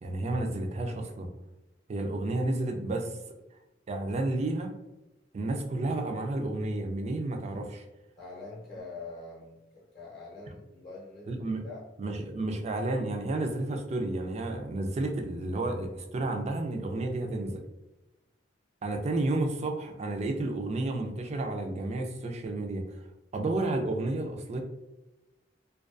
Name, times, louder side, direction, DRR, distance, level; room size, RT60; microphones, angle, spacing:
voice 1, 0.0-1.3 1.9-3.2 3.9-4.7 5.3-7.8 11.3-11.7 12.0-17.6 18.8-23.0 23.3-24.6, right 2 dB, 35° right, 4 dB, 0.3 m, -31 dB
voice 2, 8.2-11.3 11.6-11.8, left 3 dB, 40° left, -5 dB, 0.6 m, -44 dB
2.3 x 2.2 x 2.4 m, 0.96 s
head